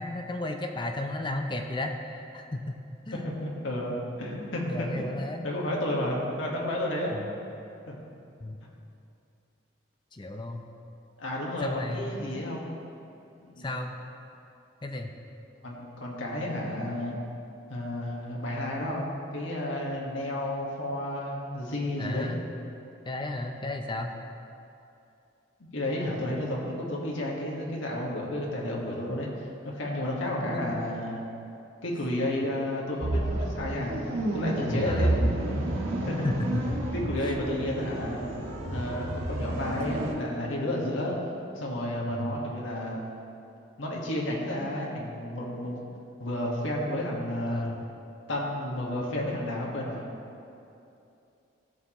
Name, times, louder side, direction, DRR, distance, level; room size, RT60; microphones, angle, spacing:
voice 1, 0.0-2.7 3.1-3.2 4.7-5.5 7.1-7.2 8.4-8.6 10.1-10.6 11.6-12.1 13.6-14.0 14.8-15.2 22.0-22.4 23.0-24.1 34.8-35.2 36.2-36.9 42.1-42.4 47.5-47.9, left 2 dB, 25° left, 4 dB, 0.5 m, -33 dB
voice 2, 3.2-5.0 5.4-7.2 7.9-8.0 11.2-12.7 13.4-13.7 15.6-17.2 17.7-22.3 25.6-31.2 31.8-35.1 36.1-36.3 36.9-38.2 38.7-41.2 41.6-43.1 43.8-45.8 46.2-47.7 48.3-50.0, left 1 dB, 85° left, -3 dB, 1.7 m, -31 dB
sound 1, 33.0-40.1, right 1 dB, 90° right, 1.5 m, -30 dB
16.5 x 6.8 x 3.1 m, 2.7 s
head